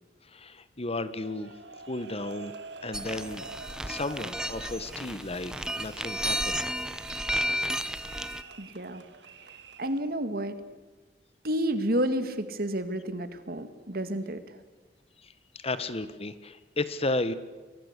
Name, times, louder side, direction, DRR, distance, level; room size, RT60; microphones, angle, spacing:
voice 1, 0.2-1.5 1.9-3.5 3.8-6.6 6.9-7.0 7.3-7.4 7.7-7.8 8.1-8.2 15.2-17.3, left 2 dB, 35° left, 14 dB, 1.4 m, -34 dB
sound 1, 1.1-10.1, right 4 dB, 80° right, 2.4 m, -47 dB
sound 2, 2.9-8.4, equal, 5° right, 1.0 m, -33 dB
voice 2, 8.6-9.0 9.8-10.6 11.4-14.6, right 1 dB, 60° right, 10 dB, 2.3 m, -30 dB
29.5 x 23.5 x 8.3 m, 1.3 s
head